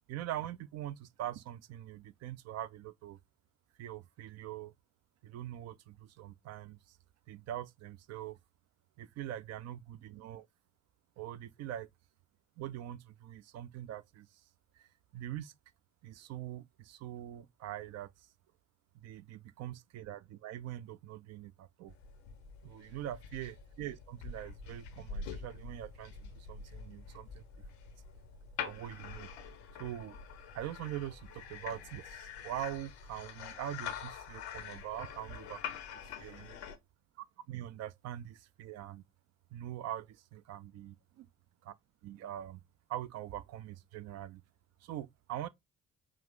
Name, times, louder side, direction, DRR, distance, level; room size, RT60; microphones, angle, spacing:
voice 1, 0.1-3.2 3.8-4.7 5.2-7.0 7.3-8.4 9.0-10.5 11.2-11.9 12.6-14.3 14.8-14.9 15.1-15.5 16.0-18.1 19.0-21.9 22.6-27.4 28.6-29.3 29.7-30.2 30.5-35.6 36.2-36.6 37.2-39.0 39.5-41.3 41.6-41.7 42.0-42.6 42.9-44.4 44.8-45.5, right 12 dB, 55° right, 0.5 m, -43 dB
sound 1, 21.9-36.8, left 7 dB, 80° left, 0.7 m, -45 dB
4.7 x 2.4 x 3.6 m
figure-of-eight pair, 40°, 32 cm